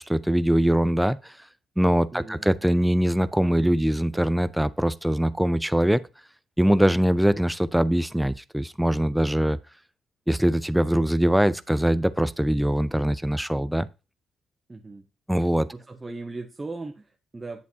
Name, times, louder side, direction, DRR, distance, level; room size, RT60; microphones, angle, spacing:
voice 1, 0.0-1.3 1.8-6.0 6.6-9.6 10.3-13.9 15.3-15.7, equal, 5° right, 0.4 m, -22 dB
voice 2, 2.1-2.6 14.7-15.1 15.7-17.6, right 3 dB, 20° right, 0.8 m, -38 dB
8.3 x 7.1 x 2.8 m
cardioid pair, 90°, 0 cm